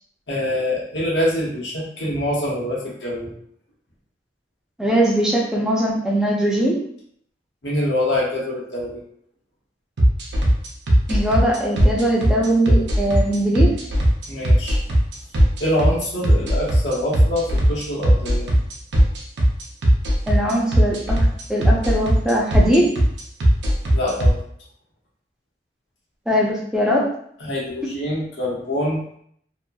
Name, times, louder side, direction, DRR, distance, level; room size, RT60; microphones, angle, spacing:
voice 1, 0.3-3.3 7.6-9.0 14.3-14.8 15.6-18.5 23.9-24.4 27.4-29.0, left 1 dB, 85° left, -4 dB, 0.8 m, -24 dB
voice 2, 4.8-6.8 11.1-13.7 20.3-21.2 21.5-23.0 26.3-27.1, equal, 5° right, -3 dB, 0.5 m, -20 dB
sound 1, 10.0-24.3, equal, 80° right, 0.6 m, -16 dB
2.8 x 2.4 x 2.3 m, 0.67 s
head